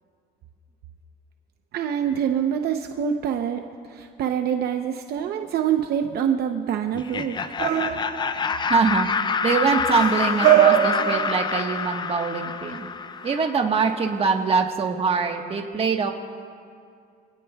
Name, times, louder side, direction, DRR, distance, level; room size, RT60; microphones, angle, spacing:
voice 1, 1.7-7.6, right 8 dB, 60° right, 5 dB, 0.8 m, -26 dB
Laughter, 6.9-13.7, left 5 dB, 25° left, 0.5 m, -27 dB
sound 1, 7.6-8.4 9.9-11.8 13.2-13.3, right 11 dB, 85° right, 2.1 m, -21 dB
voice 2, 8.7-9.1 9.4-12.9 13.2-16.1, right 5 dB, 30° right, 3 dB, 1.4 m, -23 dB
27.0 x 17.5 x 2.3 m, 2.3 s
cardioid pair, 140°, 18 cm